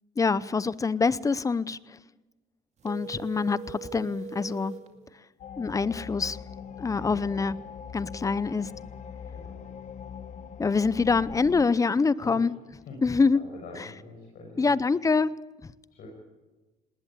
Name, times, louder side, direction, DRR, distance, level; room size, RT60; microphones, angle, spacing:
voice 1, 0.2-1.8 2.8-4.7 5.6-6.4 6.8-7.6 7.9-8.7 10.6-12.5 13.0-13.4 14.6-15.3, left 4 dB, 20° left, 0.7 m, -25 dB
sound 1, 2.8-4.9, right 6 dB, 40° right, 2.3 m, -41 dB
sound 2, 5.4-11.7, left 7 dB, 45° left, 1.0 m, -41 dB
voice 2, 6.9-7.4 9.3-9.8 12.2-12.4 12.9-13.0 13.3-14.7 15.9-16.1, left 3 dB, 60° left, 5.9 m, -45 dB
19.5 x 19.0 x 8.4 m
cardioid pair, 110°, 17 cm